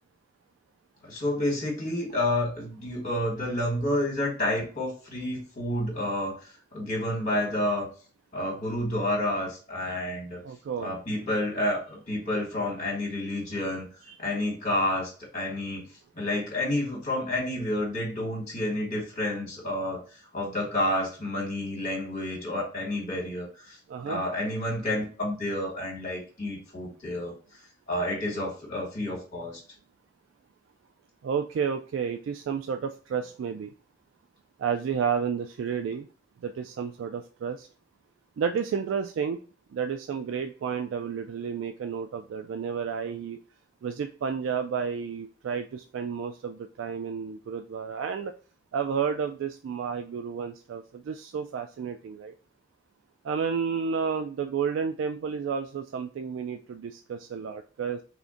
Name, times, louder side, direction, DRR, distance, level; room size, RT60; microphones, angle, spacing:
voice 1, 1.0-6.3 6.7-7.9 8.3-10.4 10.8-13.8 14.2-15.9 16.1-20.0 20.3-23.8 24.0-27.3 27.9-29.6, left 1 dB, 40° left, -2 dB, 1.6 m, -29 dB
voice 2, 10.4-10.9 14.0-14.2 23.9-24.2 31.2-33.7 34.6-36.1 36.4-37.7 38.4-39.4 39.7-43.4 43.8-48.3 48.7-52.3 53.2-58.0, right 6 dB, 80° right, 7 dB, 0.3 m, -31 dB
3.5 x 2.5 x 3.7 m, 0.37 s
head